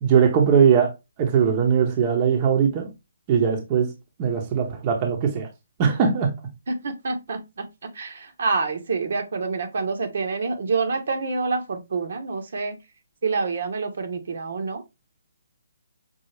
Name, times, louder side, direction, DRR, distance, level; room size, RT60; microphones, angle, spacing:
voice 1, 0.0-2.9 3.3-3.9 4.2-5.5 5.8-6.3, right 7 dB, 30° right, 0.8 m, -20 dB
voice 2, 6.8-7.6 8.0-12.7 13.2-14.8, right 4 dB, 65° right, 1.0 m, -27 dB
5.4 x 2.0 x 3.2 m
hypercardioid pair, 150°, 0 cm